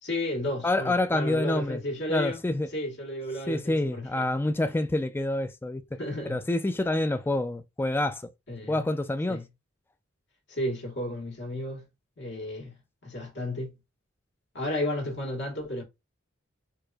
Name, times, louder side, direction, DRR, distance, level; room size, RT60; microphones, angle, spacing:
voice 1, 0.0-2.4 2.7-4.3 6.0-6.4 6.9-7.1 8.5-8.9 9.3-9.5 10.5-11.9 12.2-12.7 13.0-13.8 14.5-15.8, left 1 dB, 60° left, 1.5 m, -33 dB
voice 2, 0.6-1.8 2.1-2.7 3.5-5.8 6.3-8.3 8.7-9.4, left 2 dB, 10° left, 0.3 m, -27 dB
4.6 x 2.5 x 2.3 m
head